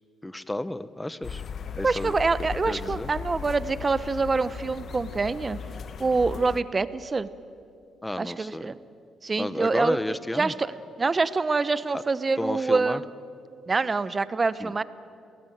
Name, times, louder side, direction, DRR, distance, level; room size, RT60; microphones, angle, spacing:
voice 1, 0.2-1.4 1.8-2.1 2.7-3.1 8.0-8.7 9.4-10.5 11.9-12.0 12.4-13.0 14.6-14.7, left 1 dB, 10° left, 15 dB, 0.9 m, -32 dB
sound 1, 1.2-6.6, left 6 dB, 50° left, 1.1 m, -37 dB
voice 2, 1.8-5.6 6.0-7.3 8.2-8.8 9.2-10.0 10.3-13.1 13.7-14.8, right 4 dB, 25° right, 15 dB, 0.9 m, -26 dB
27.5 x 18.5 x 9.3 m, 2.5 s
cardioid pair, 110°, 0 cm